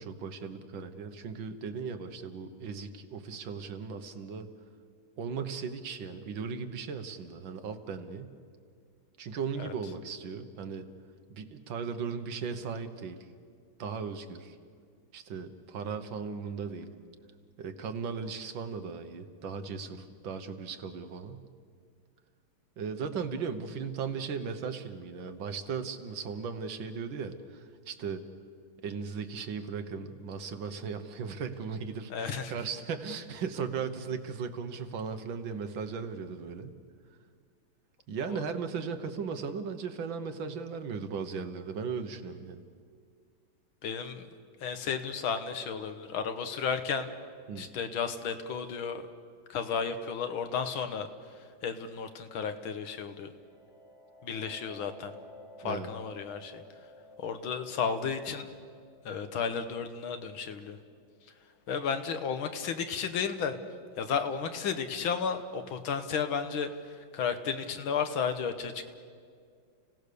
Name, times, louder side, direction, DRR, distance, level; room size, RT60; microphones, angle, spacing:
voice 1, 0.0-4.5 5.2-8.3 9.2-10.9 11.3-13.2 13.8-14.6 15.1-16.9 17.6-21.5 22.8-28.2 28.8-36.7 38.1-42.6 47.5-47.7 55.6-55.9, right 5 dB, 70° right, 8 dB, 1.9 m, -37 dB
voice 2, 32.1-32.5 38.3-38.4 43.8-44.3 44.6-47.1 47.6-49.1 49.5-51.1 51.4-53.3 54.2-55.2 55.6-56.6 57.2-58.5 59.1-60.8 61.7-63.6 64.0-68.9, left 6 dB, 80° left, 8 dB, 1.9 m, -33 dB
sound 1, 53.1-62.5, left 1 dB, 30° left, 7.0 m, -55 dB
30.0 x 17.0 x 6.8 m, 2.1 s
omnidirectional pair, 2.2 m